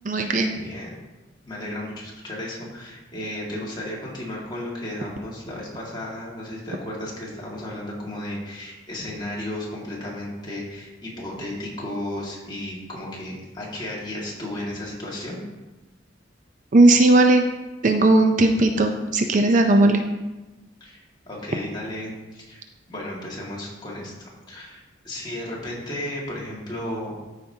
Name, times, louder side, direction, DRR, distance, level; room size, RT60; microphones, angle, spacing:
voice 1, 0.0-0.6 16.7-17.5 17.8-20.0, right 2 dB, 40° right, 5 dB, 0.5 m, -17 dB
voice 2, 0.6-1.0 1.4-15.4 20.8-22.6 22.9-27.1, left 1 dB, 25° left, -4 dB, 1.9 m, -34 dB
13.0 x 5.1 x 2.8 m, 1.1 s
head